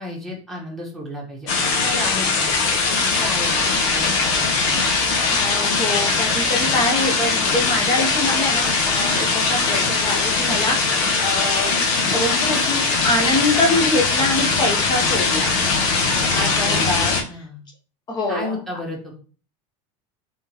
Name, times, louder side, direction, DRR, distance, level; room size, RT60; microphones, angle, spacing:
voice 1, 0.0-1.5 1.8-2.5 3.0-4.8 17.3-17.6 18.3-19.1, left 1 dB, ahead, -3 dB, 1.2 m, -32 dB
sound 1, 1.5-17.2, left 4 dB, 65° left, 1.0 m, -20 dB
voice 2, 5.2-11.7 12.1-15.5 16.3-17.4 18.1-18.6, left 2 dB, 25° left, 2 dB, 0.8 m, -24 dB
3.6 x 3.5 x 3.0 m, 0.39 s
supercardioid pair, 150°, 16 cm